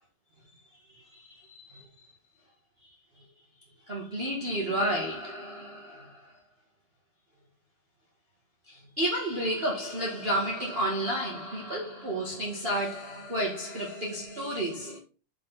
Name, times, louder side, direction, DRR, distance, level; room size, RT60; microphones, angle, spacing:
voice 1, 0.9-1.9 3.2-3.3 3.9-6.3 8.7-15.0, right 1 dB, 50° right, 0.6 m, -31 dB
6.6 x 6.1 x 4.0 m
omnidirectional pair, 4.5 m